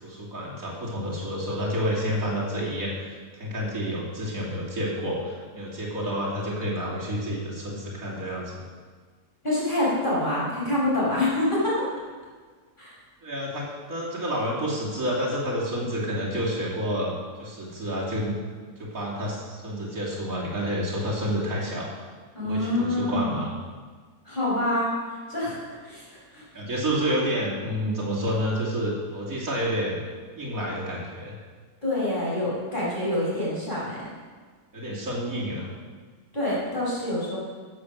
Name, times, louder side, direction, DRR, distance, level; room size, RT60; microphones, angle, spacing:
voice 1, 0.0-8.6 13.2-18.3 18.8-21.9 22.4-23.5 26.5-30.0 30.4-31.3 34.7-35.7, equal, 55° right, -6 dB, 3.5 m, -29 dB
voice 2, 9.4-11.9 12.8-12.9 22.3-23.4 24.3-24.9 25.3-26.5 31.8-34.0 36.3-37.4, left 1 dB, 30° left, -7 dB, 5.5 m, -26 dB
15.0 x 8.3 x 6.5 m, 1.5 s
omnidirectional pair, 1.7 m